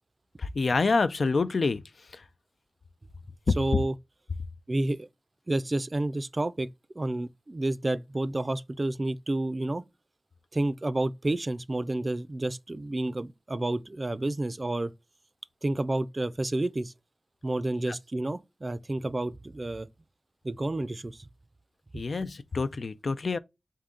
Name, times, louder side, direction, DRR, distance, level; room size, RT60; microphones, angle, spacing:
voice 1, 0.4-1.8 2.1-2.2 17.9-18.0 21.9-23.4, left 4 dB, 80° left, 0.3 m, -27 dB
voice 2, 3.6-3.9 4.7-5.1 5.5-6.7 7.0-9.8 10.5-14.9 15.6-16.9 17.4-19.9 20.4-21.2, right 2 dB, 45° right, 0.4 m, -30 dB
3.6 x 2.7 x 3.6 m
cardioid pair, 45°, 0 cm